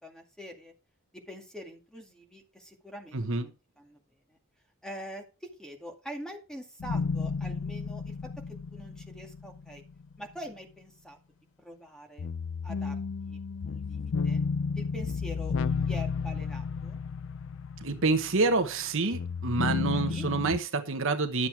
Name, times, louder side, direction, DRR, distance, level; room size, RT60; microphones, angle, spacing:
voice 1, 0.0-0.7 1.1-4.0 4.3-4.4 4.8-8.1 8.5-9.8 10.2-11.2 11.6-12.3 12.6-14.4 14.8-15.5 15.9-17.0 19.9-20.3, equal, 5° left, 3 dB, 2.1 m, -44 dB
voice 2, 3.1-3.5 17.8-21.5, right 3 dB, 65° right, 8 dB, 1.1 m, -27 dB
sound 1, 6.8-10.1 12.2-18.8 19.1-20.6, left 5 dB, 65° left, 0.4 m, -32 dB
11.0 x 7.5 x 4.7 m, 0.31 s
head